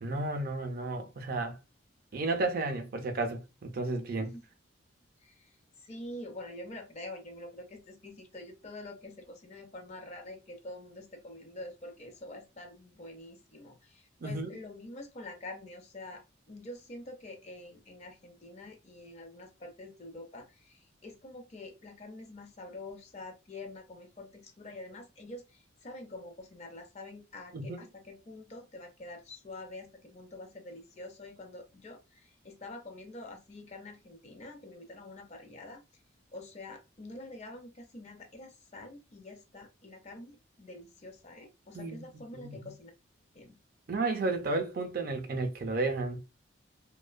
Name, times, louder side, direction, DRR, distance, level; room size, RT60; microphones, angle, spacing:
voice 1, 0.0-1.6 2.1-4.3 14.2-14.5 27.5-27.8 41.7-42.0 42.3-42.7 43.9-46.2, right 2 dB, 45° right, 0.4 m, -32 dB
voice 2, 5.2-5.5 5.8-35.8 36.3-42.9 43.3-43.6, left 2 dB, 35° left, 0.5 m, -46 dB
2.5 x 2.1 x 2.4 m
head